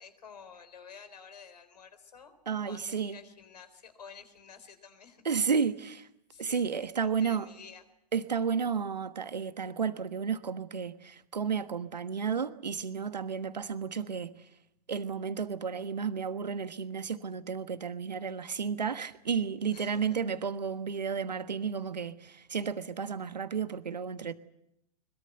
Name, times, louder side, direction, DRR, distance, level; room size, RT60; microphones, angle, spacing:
voice 1, 0.0-2.4 2.6-5.5 6.3-7.8 19.7-20.2, left 6 dB, 75° left, 4.0 m, -51 dB
voice 2, 2.5-3.2 5.2-6.1 6.4-7.5 8.1-14.5 14.9-24.3, right 6 dB, 90° right, 1.3 m, -32 dB
22.5 x 21.5 x 7.9 m
hypercardioid pair, 115°, 21 cm